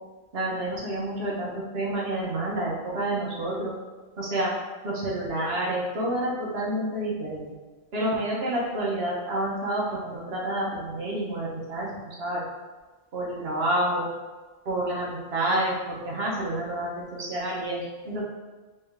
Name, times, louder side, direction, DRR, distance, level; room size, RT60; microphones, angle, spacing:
voice 1, 0.3-3.7 4.2-4.5 4.8-7.5 7.9-12.4 13.1-14.1 14.6-18.2, right 1 dB, 65° right, -4 dB, 1.2 m, -29 dB
3.4 x 3.1 x 3.4 m, 1.3 s
omnidirectional pair, 1.1 m